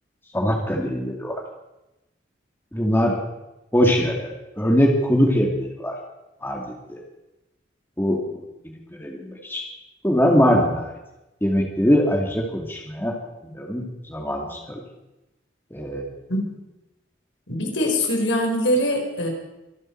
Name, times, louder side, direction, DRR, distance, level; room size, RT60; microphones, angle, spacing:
voice 1, 0.3-1.4 2.7-3.2 3.7-6.0 6.4-6.6 6.9-7.0 8.0-9.6 10.0-10.9 11.4-13.1 13.4-14.8 15.7-16.0, equal, 10° left, 0 dB, 2.1 m, -22 dB
voice 2, 17.5-19.3, equal, 75° left, 1 dB, 4.2 m, -22 dB
25.0 x 12.0 x 4.5 m, 0.97 s
head